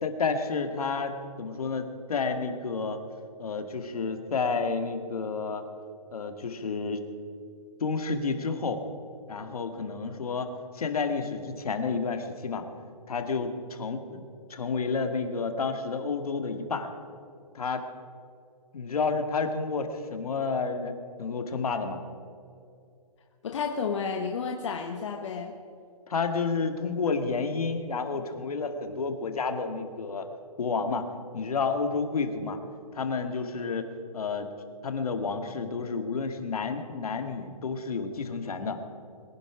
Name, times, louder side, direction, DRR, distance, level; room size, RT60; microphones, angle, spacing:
voice 1, 0.0-3.0 3.4-5.6 6.1-7.0 7.8-8.8 9.3-12.7 13.1-14.2 14.5-16.9 17.5-17.8 18.7-22.0 26.1-30.3 30.6-31.1 31.3-32.6 32.9-33.9 34.1-34.5 34.8-38.8, left 4 dB, 65° left, 7 dB, 1.9 m, -30 dB
voice 2, 23.4-25.6, left 5 dB, 50° left, 3 dB, 1.2 m, -31 dB
22.5 x 10.5 x 5.0 m, 2.5 s
hypercardioid pair, 160°, 20 cm